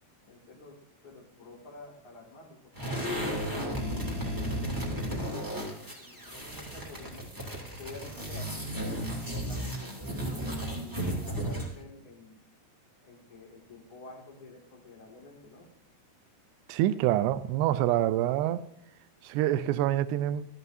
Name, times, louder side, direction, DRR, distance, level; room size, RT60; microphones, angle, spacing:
voice 1, 0.3-0.8 1.0-2.6 3.9-5.7 6.0-7.3 7.8-10.7 11.3-12.4 13.0-15.6, left 3 dB, 35° left, -3 dB, 2.5 m, -50 dB
sound 1, 2.7-11.8, equal, 5° right, 1.6 m, -34 dB
voice 2, 16.7-18.6 19.2-20.5, right 13 dB, 80° right, 14 dB, 2.7 m, -26 dB
13.5 x 13.0 x 2.7 m, 0.79 s
omnidirectional pair, 5.1 m